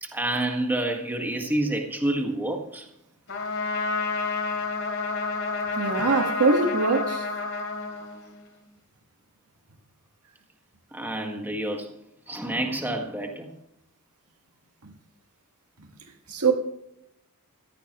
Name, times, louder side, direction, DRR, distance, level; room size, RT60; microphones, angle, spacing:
voice 1, 0.0-2.9 10.9-11.9 12.3-13.5, right 1 dB, 10° right, 1.8 m, -28 dB
Trumpet, 3.3-8.6, left 3 dB, 60° left, 3.3 m, -30 dB
voice 2, 5.8-7.3 14.8-14.9 16.3-16.5, right 4 dB, 90° right, 1.7 m, -22 dB
17.0 x 14.5 x 3.1 m
head